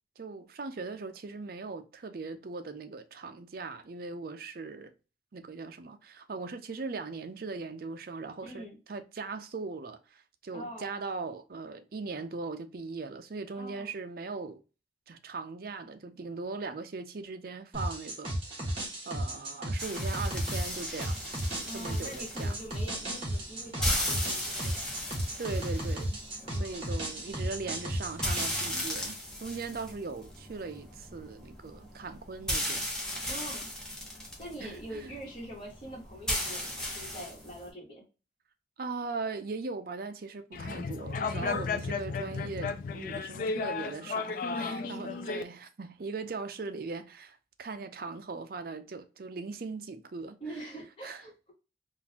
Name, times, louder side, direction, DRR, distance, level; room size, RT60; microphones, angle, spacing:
voice 1, 0.2-4.9 5.3-14.6 15.1-18.8 19.1-21.2 21.5-22.6 25.4-26.2 26.5-32.9 33.2-33.3 34.6-35.2 38.8-50.4 51.0-51.2, right 4 dB, 50° right, 0.4 m, -39 dB
voice 2, 8.4-8.8 10.5-11.0 13.5-13.9 21.7-24.8 26.4-26.9 33.3-33.7 34.4-38.0 44.5-45.5 50.4-51.5, right 1 dB, 25° left, 1.3 m, -44 dB
sound 1, 17.7-28.7, right 1 dB, 30° right, 1.5 m, -34 dB
sound 2, 19.8-37.7, left 1 dB, 5° left, 0.9 m, -37 dB
sound 3, 40.5-45.4, left 4 dB, 45° left, 0.3 m, -34 dB
3.8 x 2.4 x 2.7 m
head